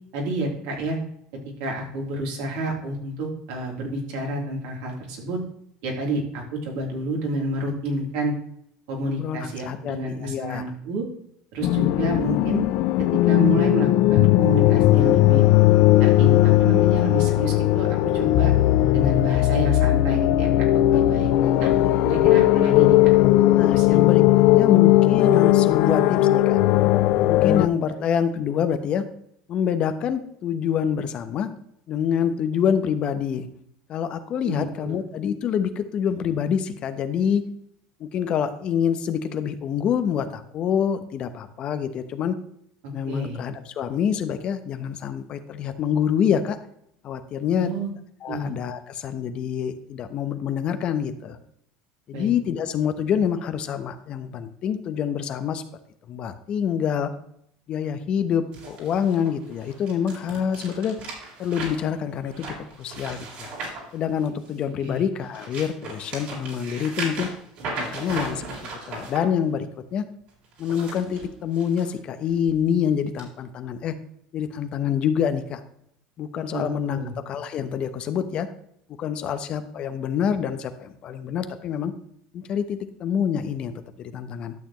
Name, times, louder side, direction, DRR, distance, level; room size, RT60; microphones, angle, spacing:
voice 1, 0.1-1.0 1.6-5.4 5.8-8.3 8.9-11.0 11.5-12.6 13.0-15.4 16.0-18.5 18.9-21.3 21.6-21.7 22.0-23.1 23.8-24.0 27.9-28.0 34.4-34.9 43.1-43.4 47.6-47.9 48.3-48.5 52.1-52.3 64.8-65.0 76.5-77.1, right 2 dB, 75° right, -1 dB, 3.3 m, -29 dB
voice 2, 9.1-10.6 21.3-21.7 23.5-26.6 27.3-29.0 29.5-31.5 31.9-33.5 33.9-37.4 38.0-42.4 42.9-46.6 47.0-47.7 48.2-51.4 52.1-55.6 56.1-57.1 57.7-61.0 61.4-63.5 63.9-67.3 67.8-68.5 68.8-70.1 70.6-73.9 74.3-75.6 76.2-77.0 77.3-78.5 79.0-81.9 82.3-84.5, left 8 dB, 45° left, 10 dB, 1.0 m, -26 dB
sound 1, 11.6-27.7, left 15 dB, 65° left, 0.4 m, -18 dB
sound 2, 58.5-64.7 65.1-69.2 70.4-71.8 72.3-72.5 73.2-73.3, right 3 dB, 60° right, 4.1 m, -37 dB
12.0 x 6.7 x 3.1 m, 0.72 s
supercardioid pair, 115°, 2 cm